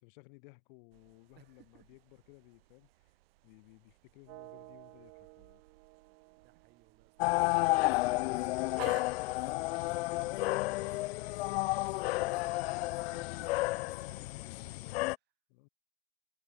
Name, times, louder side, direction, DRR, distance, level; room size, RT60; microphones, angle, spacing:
voice 1, 0.0-3.2 3.4-5.6 8.8-13.3 14.1-15.1 15.5-15.7, left 30 dB, 55° left, 2.5 m, -58 dB
sound 1, 0.9-14.7, right 18 dB, 75° right, 2.0 m, -58 dB
voice 2, 1.3-1.9 6.4-8.2 13.1-14.2, right 16 dB, 35° right, 6.7 m, -64 dB
sound 2, 4.3-8.2, right 40 dB or more, 50° right, 7.1 m, -55 dB
sound 3, 7.2-15.2, left 20 dB, 85° left, 0.5 m, -32 dB
supercardioid pair, 165°, 30 cm